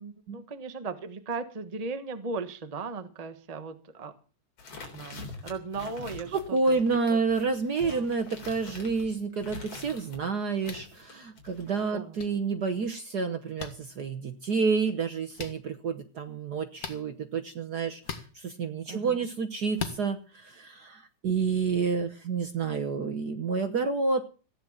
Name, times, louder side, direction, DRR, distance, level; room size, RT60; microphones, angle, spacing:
voice 1, 0.0-4.1 4.9-6.4 6.7-6.8 7.1-7.2 7.8-8.1 11.9-12.2 18.9-19.2, right 4 dB, 80° right, 10 dB, 0.3 m, -37 dB
sound 1, 4.6-10.2 10.6-11.8, left 3 dB, 55° left, 4.7 m, -45 dB
voice 2, 6.3-24.2, right 4 dB, 65° right, 7 dB, 1.0 m, -29 dB
sound 2, 10.6-10.9 12.2-12.3 13.6-13.7 15.3-15.5 16.8-17.0 18.0-18.3 19.7-20.0, left 6 dB, 40° left, 1.6 m, -36 dB
15.5 x 10.5 x 7.3 m, 0.38 s
omnidirectional pair, 3.3 m